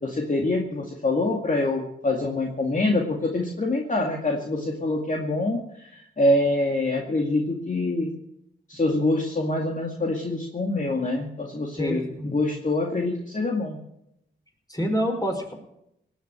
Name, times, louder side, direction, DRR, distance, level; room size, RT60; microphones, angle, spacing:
voice 1, 0.0-8.1 8.7-13.8, left 2 dB, 40° left, 1 dB, 2.3 m, -25 dB
voice 2, 11.8-12.3 14.7-15.5, equal, 20° left, 3 dB, 5.2 m, -27 dB
18.0 x 8.0 x 9.0 m, 0.81 s
cardioid pair, 55°, 20 cm